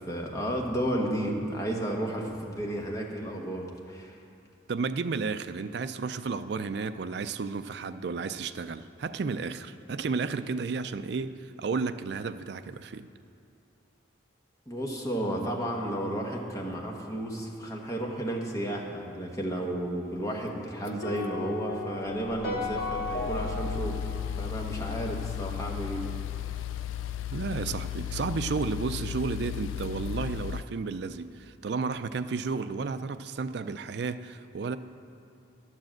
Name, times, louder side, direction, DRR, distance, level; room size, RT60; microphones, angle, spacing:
voice 1, 0.0-4.2 14.7-24.0 24.4-26.1, right 1 dB, 15° left, -1 dB, 1.1 m, -32 dB
voice 2, 4.7-13.1 27.3-34.8, right 4 dB, 55° right, 11 dB, 0.4 m, -32 dB
sound 1, 20.9-30.6, left 9 dB, 80° left, 0.3 m, -35 dB
sound 2, 21.0-25.3, left 3 dB, 55° left, 2.0 m, -36 dB
10.5 x 7.4 x 7.6 m, 2.6 s
head